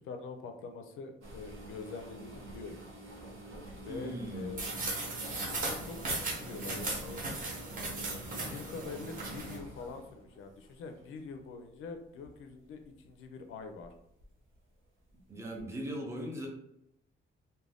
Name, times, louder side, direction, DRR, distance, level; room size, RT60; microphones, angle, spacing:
voice 1, 0.0-2.8 3.7-4.7 5.5-7.2 8.0-13.9, left 4 dB, 80° left, 6 dB, 0.5 m, -45 dB
sound 1, 1.2-11.4 12.0-12.3 12.8-13.0 13.8-14.2 14.5-14.6 15.6-15.7, right 2 dB, 70° right, 0.8 m, -48 dB
voice 2, 3.9-4.5 15.3-16.5, right 1 dB, 15° right, -1 dB, 0.5 m, -39 dB
sound 2, 4.6-9.6, right 2 dB, 40° right, 0.8 m, -37 dB
2.5 x 2.2 x 3.3 m, 0.79 s
cardioid pair, 175°, 21 cm